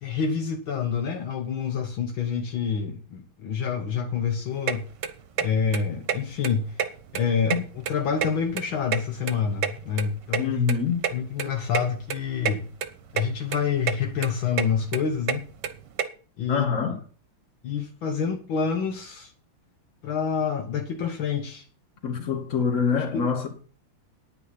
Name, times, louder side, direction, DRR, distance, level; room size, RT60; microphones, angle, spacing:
voice 1, 0.0-4.9 5.4-6.8 7.1-7.6 7.9-10.6 11.1-12.7 13.1-15.4 16.4-16.7 17.6-19.3 20.0-21.7 22.9-23.5, left 6 dB, 70° left, 1.8 m, -27 dB
sound 1, 4.7-4.8 5.0-5.5 5.7-5.8 6.1-6.2 6.4-7.2 7.5-8.7 8.9-10.4 10.7-10.8 11.0-11.1 11.4-11.5 11.7-11.9 12.1-12.5 12.8-13.2 13.5-14.0 14.2-16.0, right 7 dB, 60° right, 1.5 m, -27 dB
voice 2, 10.4-11.0 16.5-17.0 22.0-23.5, left 6 dB, 35° left, 2.2 m, -25 dB
9.8 x 9.6 x 5.7 m
omnidirectional pair, 2.4 m